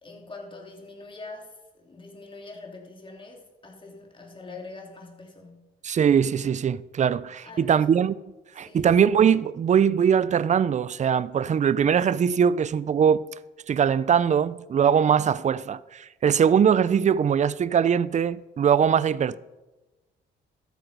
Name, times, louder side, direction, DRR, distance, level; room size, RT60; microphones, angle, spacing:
voice 1, 0.0-5.7 7.4-7.9 8.6-8.9, left 3 dB, 25° left, 2.8 m, -44 dB
voice 2, 5.8-8.1 8.6-13.2 13.7-19.4, right 8 dB, 35° right, 0.5 m, -21 dB
13.0 x 8.0 x 5.2 m
cardioid pair, 90°, 20 cm